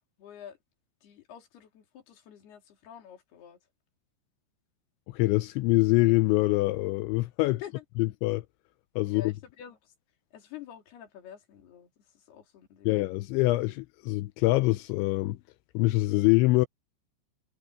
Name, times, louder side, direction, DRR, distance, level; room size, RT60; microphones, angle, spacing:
voice 1, 0.2-0.6 1.0-3.6 7.6-7.8 9.0-9.9 10.3-13.0, left 10 dB, 55° left, 4.8 m, -47 dB
voice 2, 5.1-7.6 8.0-8.4 9.0-9.3 12.9-15.4 15.7-16.7, left 21 dB, 85° left, 2.7 m, -24 dB
omnidirectional pair, 5.7 m